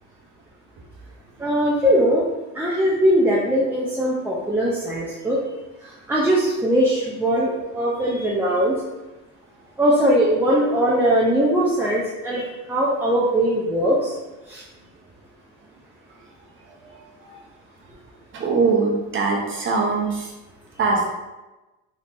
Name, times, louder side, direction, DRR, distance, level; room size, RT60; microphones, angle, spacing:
voice 1, 1.4-2.2 2.5-5.4 6.1-8.7 9.8-14.2 14.5-14.6, equal, 5° right, -5 dB, 0.4 m, -20 dB
voice 2, 18.3-20.3 20.8-21.1, right 4 dB, 30° right, -1 dB, 0.9 m, -23 dB
3.6 x 2.7 x 2.5 m, 1.1 s
supercardioid pair, 100°, 37 cm